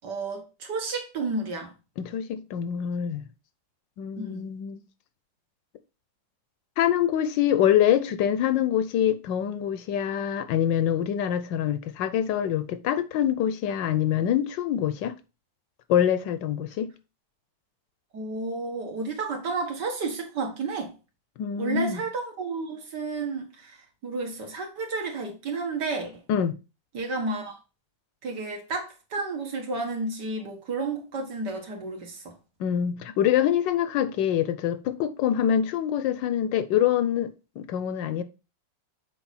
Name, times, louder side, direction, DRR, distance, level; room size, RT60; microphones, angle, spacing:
voice 1, 0.0-1.7 4.2-4.5 18.1-20.9 21.6-23.8 24.0-26.2 26.9-27.6 28.2-32.4, right 3 dB, 65° right, 2.2 m, -31 dB
voice 2, 2.0-3.2 4.0-4.8 6.8-15.1 15.9-16.9 21.4-22.0 26.3-26.5 32.6-38.2, left 10 dB, 75° left, 1.3 m, -25 dB
7.0 x 4.6 x 4.2 m
omnidirectional pair, 2.0 m